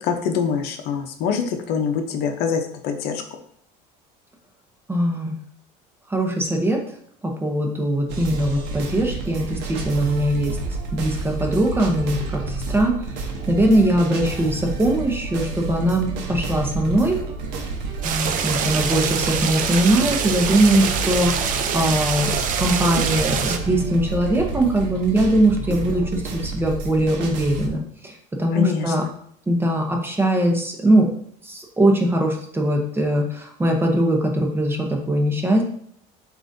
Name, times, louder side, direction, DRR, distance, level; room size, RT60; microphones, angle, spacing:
voice 1, 0.0-3.2 28.5-29.1, left 6 dB, 60° left, 5 dB, 0.7 m, -24 dB
voice 2, 4.9-5.4 6.1-6.8 7.2-10.6 10.9-12.9 13.5-17.2 18.0-29.0 29.5-31.1 31.4-35.6, right 1 dB, 10° right, 1 dB, 0.8 m, -21 dB
sound 1, 8.1-27.7, right 3 dB, 75° right, 0.8 m, -30 dB
sound 2, 18.0-23.6, right 7 dB, 50° right, 0.5 m, -25 dB
7.8 x 2.6 x 2.6 m, 0.63 s
cardioid pair, 130°, 18 cm